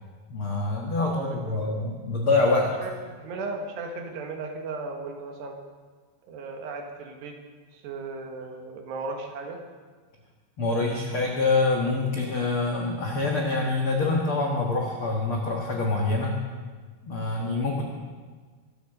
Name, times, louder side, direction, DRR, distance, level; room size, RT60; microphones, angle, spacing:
voice 1, 0.3-2.7 10.6-16.4 17.0-17.8, left 3 dB, 70° left, -1 dB, 1.2 m, -25 dB
voice 2, 1.0-1.7 2.8-2.9 3.2-5.6 6.3-7.4 7.7-9.6, right 3 dB, 70° right, 3 dB, 3.6 m, -36 dB
23.5 x 9.0 x 6.7 m, 1.5 s
omnidirectional pair, 5.2 m